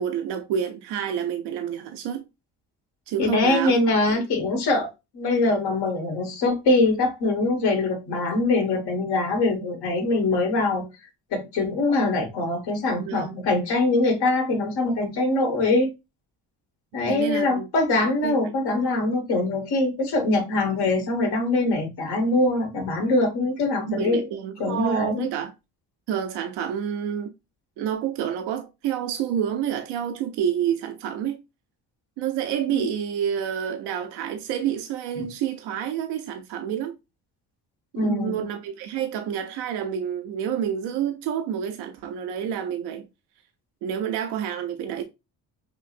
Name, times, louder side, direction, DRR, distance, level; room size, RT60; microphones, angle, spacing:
voice 1, 0.0-2.2 3.1-3.8 13.0-13.4 17.1-17.7 18.2-18.5 23.9-25.5 26.1-27.3 27.8-31.4 32.2-36.9 37.9-43.1 43.8-45.0, right 9 dB, 90° right, 0.6 m, -28 dB
voice 2, 3.2-4.9 5.1-10.9 11.3-15.9 16.9-24.2 24.6-25.3 32.7-32.8 35.2-35.3 38.0-38.4, left 2 dB, 75° left, 1.6 m, -23 dB
5.8 x 2.0 x 2.5 m
cardioid pair, 90°, 39 cm